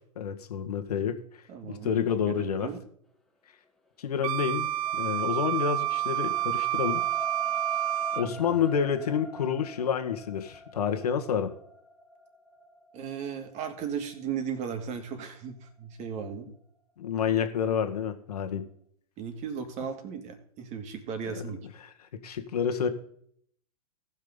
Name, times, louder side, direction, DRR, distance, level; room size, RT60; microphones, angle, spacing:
voice 1, 0.1-1.2 1.6-2.7 4.0-7.0 8.1-11.5 17.0-18.7 21.8-21.9 22.2-22.9, left 7 dB, 75° left, 7 dB, 1.7 m, -29 dB
voice 2, 1.5-2.8 8.3-8.6 12.9-16.5 19.2-21.6, right 7 dB, 35° right, 5 dB, 2.4 m, -36 dB
Wind instrument woodwind instrument, 4.2-8.3, right 13 dB, 60° right, 0.4 m, -29 dB
sound 1, 4.5-16.6 17.1-17.2, left 3 dB, ahead, 1.6 m, -46 dB
18.0 x 6.5 x 3.9 m, 0.64 s
hypercardioid pair, 115°, 20 cm